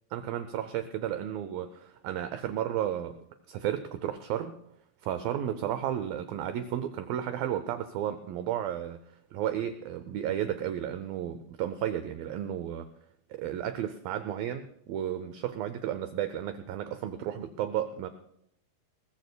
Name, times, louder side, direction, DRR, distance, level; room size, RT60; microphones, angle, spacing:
voice 1, 0.1-4.5 5.0-9.0 9.3-12.9 13.3-18.1, right 10 dB, 85° right, 10 dB, 2.1 m, -33 dB
21.0 x 20.5 x 2.2 m, 0.75 s
omnidirectional pair, 4.9 m